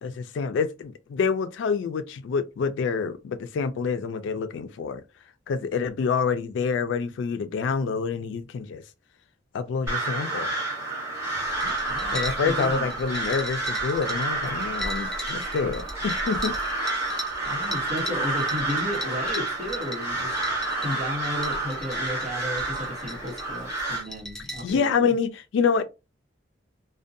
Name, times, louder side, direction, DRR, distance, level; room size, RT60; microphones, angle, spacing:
voice 1, 0.0-5.0 5.5-8.8 9.5-10.5 12.1-16.6 24.6-25.8, left 5 dB, 80° left, 0.3 m, -27 dB
Crow, 9.9-24.0, right 2 dB, 15° right, 1.0 m, -29 dB
sound 1, 11.4-24.8, equal, 5° left, 0.5 m, -38 dB
voice 2, 11.6-12.2 12.4-12.9 17.5-20.3 20.8-25.1, left 1 dB, 40° right, 1.0 m, -34 dB
2.5 x 2.1 x 2.5 m
head